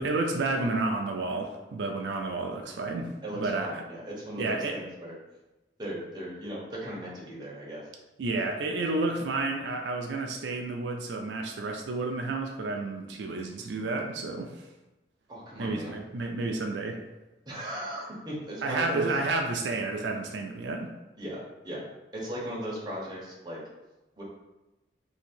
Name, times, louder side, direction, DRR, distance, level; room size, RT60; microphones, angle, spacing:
voice 1, 0.0-3.7 4.4-4.8 8.2-14.7 15.6-17.0 18.6-20.9, right 3 dB, 80° right, 2 dB, 0.4 m, -31 dB
voice 2, 3.2-5.1 5.8-7.9 15.3-15.9 17.5-19.1 21.2-21.8 22.1-23.6 24.2-24.3, right 1 dB, 25° right, -5 dB, 0.9 m, -37 dB
2.8 x 2.7 x 4.3 m, 1.0 s
head